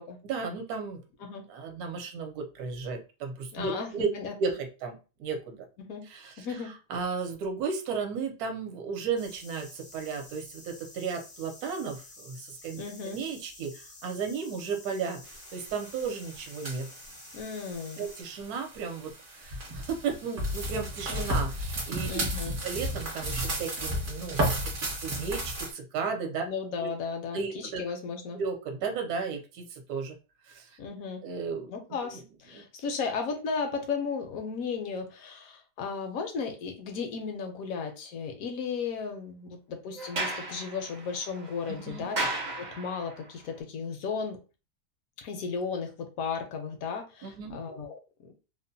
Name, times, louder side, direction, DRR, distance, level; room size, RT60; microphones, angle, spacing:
voice 1, 0.3-1.0 1.5-4.1 4.4-5.6 6.1-6.6 6.9-16.9 18.0-22.2 22.6-26.4 26.8-26.9 27.3-27.8 28.3-30.1 30.5-30.8 31.2-31.7 32.0-32.2 32.5-32.6 41.7-42.1 47.2-47.6, right 5 dB, 70° right, 4 dB, 1.1 m, -34 dB
voice 2, 3.5-4.3 5.8-6.1 6.4-6.7 12.8-13.2 17.3-18.1 22.1-22.6 26.5-28.4 30.8-31.2 31.7-42.2 42.5-44.4 45.2-48.3, left 5 dB, 70° left, 4 dB, 0.9 m, -35 dB
sound 1, 9.2-18.2, left 2 dB, 45° left, 0.5 m, -50 dB
sound 2, 15.2-25.7, right 1 dB, 45° right, 0.7 m, -34 dB
Sliding door, 40.0-43.2, right 2 dB, 85° right, 0.4 m, -35 dB
2.8 x 2.1 x 2.6 m, 0.32 s
omnidirectional pair, 1.8 m